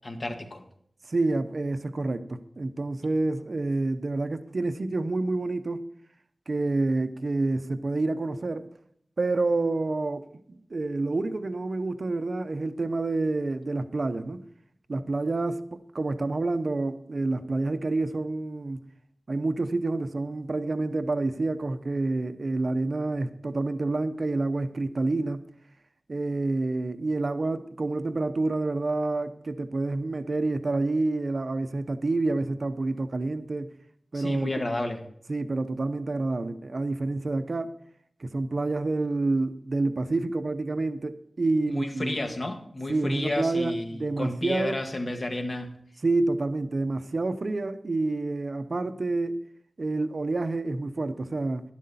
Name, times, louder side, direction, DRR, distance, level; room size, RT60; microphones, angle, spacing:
voice 1, 0.0-0.6 34.1-35.0 41.7-45.8, left 2 dB, 50° left, 1.7 m, -32 dB
voice 2, 1.1-5.9 6.5-8.7 9.2-14.4 14.9-18.8 19.3-25.5 26.1-33.7 34.1-34.5 35.3-37.8 38.2-42.2 42.9-44.8 46.0-49.4 49.8-51.6, right 2 dB, 60° right, 0.8 m, -28 dB
11.5 x 11.5 x 4.2 m
wide cardioid pair, 80°, 0 cm